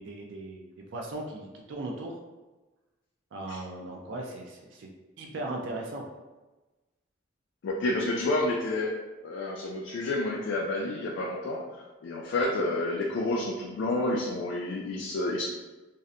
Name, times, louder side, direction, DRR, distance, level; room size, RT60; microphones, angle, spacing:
voice 1, 0.0-2.2 3.3-4.9 5.2-6.0, right 2 dB, 65° right, 0 dB, 0.4 m, -38 dB
voice 2, 7.6-9.0 9.2-11.6 12.0-15.4, left 2 dB, 65° left, -2 dB, 0.3 m, -29 dB
2.6 x 2.0 x 2.4 m, 1.2 s
head